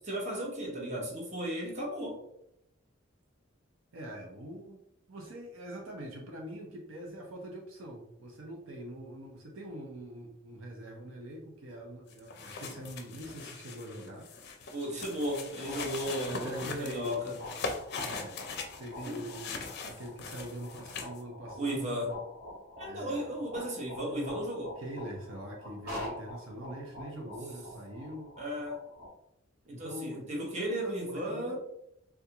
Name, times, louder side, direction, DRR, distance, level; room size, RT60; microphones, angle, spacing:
voice 1, 0.0-2.2 14.7-17.4 19.0-19.2 21.6-22.2 22.8-24.8 28.4-28.9 29.7-31.6, equal, 35° right, -1 dB, 0.8 m, -35 dB
voice 2, 3.9-4.8 5.1-14.3 16.3-17.2 18.0-18.4 18.8-22.1 22.9-23.8 24.8-28.3 29.7-31.6, right 1 dB, 75° right, 0 dB, 0.6 m, -43 dB
sound 1, 12.1-21.2, left 4 dB, 55° left, 0.5 m, -41 dB
sound 2, 15.0-29.1, left 1 dB, 50° right, 1.2 m, -46 dB
3.4 x 2.3 x 2.8 m, 0.77 s
head